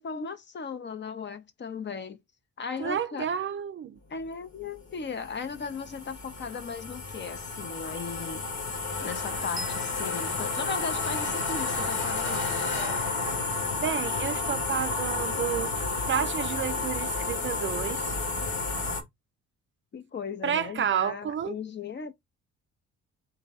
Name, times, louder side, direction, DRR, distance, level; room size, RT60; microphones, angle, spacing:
voice 1, 0.0-2.2 2.6-3.3 4.1-8.5 9.0-12.7 19.9-22.1, left 5 dB, 40° left, 0.6 m, -37 dB
voice 2, 2.8-4.0 13.8-18.1 20.4-21.6, right 8 dB, 40° right, 0.4 m, -31 dB
sound 1, 4.6-19.0, left 3 dB, 65° left, 1.5 m, -31 dB
sound 2, 8.8-14.1, left 3 dB, 85° left, 1.6 m, -39 dB
sound 3, 9.6-11.6, right 1 dB, 15° right, 1.1 m, -44 dB
3.8 x 2.7 x 3.8 m
cardioid pair, 90°, 30 cm